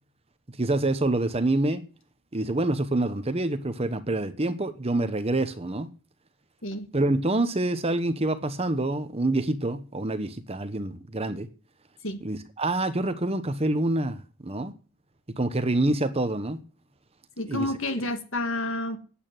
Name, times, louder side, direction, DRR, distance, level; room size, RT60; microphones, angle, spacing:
voice 1, 0.6-1.9 2.3-5.9 6.9-11.5 12.2-14.7 15.3-16.6 17.5-17.7, right 2 dB, 25° right, 0.9 m, -26 dB
voice 2, 17.4-19.0, left 1 dB, 60° left, 1.8 m, -29 dB
8.8 x 8.4 x 9.1 m
head